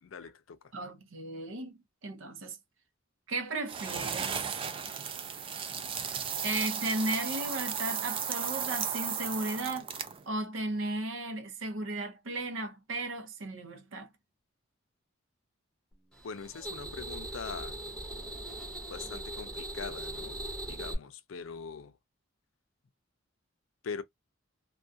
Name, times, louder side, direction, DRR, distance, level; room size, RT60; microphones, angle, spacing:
voice 1, 0.0-0.7 16.2-17.8 18.9-22.0 23.8-24.0, left 5 dB, 90° left, 0.5 m, -42 dB
voice 2, 0.7-2.6 3.3-4.6 6.4-9.9 10.3-14.1, right 2 dB, 80° right, 0.6 m, -35 dB
sound 1, 3.7-10.3, right 7 dB, 25° right, 0.3 m, -35 dB
sound 2, 16.1-20.9, right 1 dB, 5° left, 0.7 m, -40 dB
2.3 x 2.2 x 2.5 m
head